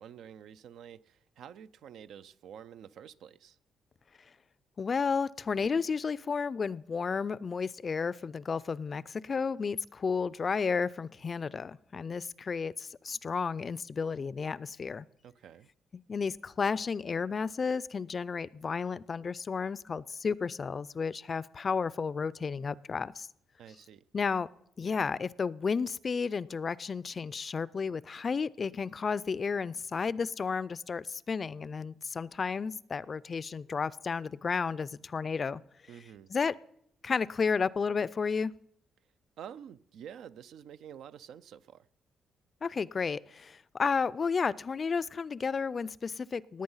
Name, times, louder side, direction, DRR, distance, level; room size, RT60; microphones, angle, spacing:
voice 1, 0.0-3.6 15.2-15.7 23.6-24.0 35.9-36.3 39.4-41.9, right 9 dB, 75° right, 0.5 m, -49 dB
voice 2, 4.8-15.1 16.1-23.3 24.1-24.5 24.8-35.6 36.3-36.5 37.0-38.5 42.6-46.6, left 5 dB, 35° left, 0.4 m, -32 dB
18.5 x 8.7 x 5.6 m
cardioid pair, 115°, 0 cm